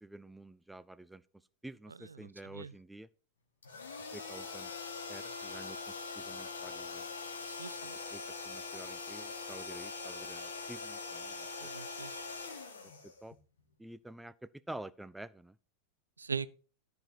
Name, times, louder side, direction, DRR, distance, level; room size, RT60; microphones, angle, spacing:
voice 1, 0.0-1.2 1.6-3.1 4.0-4.7 5.1-7.1 8.1-11.7 12.8-13.3 13.8-15.6, right 1 dB, 5° right, 0.4 m, -49 dB
sound 1, 3.6-13.6, left 4 dB, 70° left, 2.1 m, -43 dB
voice 2, 7.4-7.9 11.6-12.2 16.2-16.5, right 5 dB, 75° right, 0.5 m, -40 dB
13.5 x 5.2 x 4.4 m
figure-of-eight pair, 90°, 0 cm